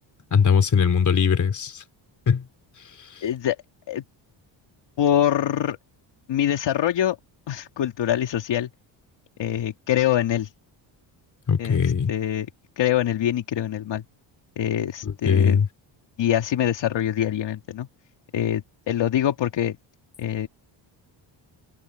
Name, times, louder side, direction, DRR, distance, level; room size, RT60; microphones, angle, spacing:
voice 1, 0.3-1.8 2.3-2.4 11.5-12.1 15.0-15.7, left 6 dB, 40° left, 3.3 m, -20 dB
voice 2, 3.2-3.6 3.9-4.0 5.0-5.8 6.3-7.2 7.5-8.7 9.4-10.5 11.6-12.5 12.8-14.0 14.6-15.6 16.2-17.9 18.3-19.8 20.2-20.5, left 11 dB, 65° left, 3.1 m, -24 dB
cardioid pair, 140°, 47 cm